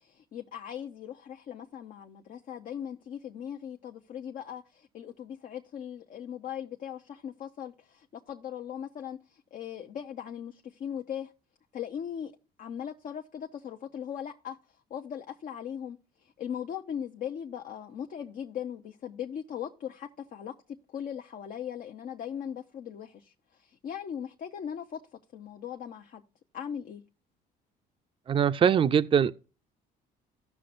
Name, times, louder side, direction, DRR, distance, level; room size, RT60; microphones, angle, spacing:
voice 1, 0.0-11.3 11.7-12.3 12.6-26.2 26.5-27.0, left 9 dB, 55° left, 0.8 m, -39 dB
voice 2, 28.3-29.4, right 8 dB, 30° right, 0.5 m, -22 dB
15.5 x 6.0 x 2.5 m
cardioid pair, 110°, 17 cm